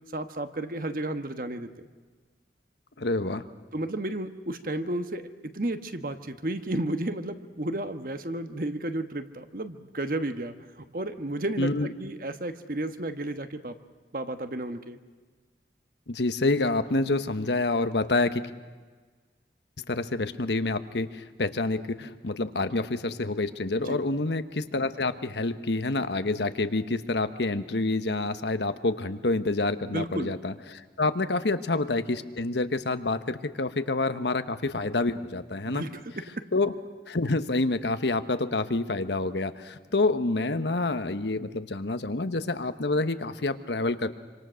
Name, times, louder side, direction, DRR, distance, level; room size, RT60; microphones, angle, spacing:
voice 1, 0.1-1.7 3.7-5.2 5.5-13.8 14.1-15.0 23.8-24.0 29.8-30.4 35.6-36.5, right 1 dB, 50° right, 8 dB, 1.3 m, -33 dB
voice 2, 3.0-3.4 11.6-11.9 16.1-18.4 19.9-35.8 36.5-36.7 37.1-44.1, left 2 dB, 80° left, 10 dB, 1.2 m, -27 dB
26.5 x 26.0 x 6.4 m, 1.4 s
head